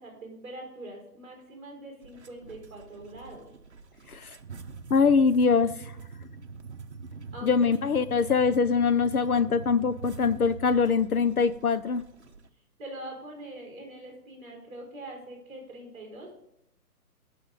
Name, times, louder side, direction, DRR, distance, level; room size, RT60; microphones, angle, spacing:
voice 1, 0.0-3.5 7.3-7.5 12.8-16.3, right 1 dB, 10° right, -1 dB, 3.5 m, -43 dB
sound 1, 2.0-12.5, right 4 dB, 45° right, 1.0 m, -44 dB
voice 2, 4.9-5.9 7.4-12.0, left 5 dB, 65° left, 13 dB, 0.6 m, -23 dB
18.5 x 6.7 x 4.0 m, 0.80 s
hypercardioid pair, 180°, 48 cm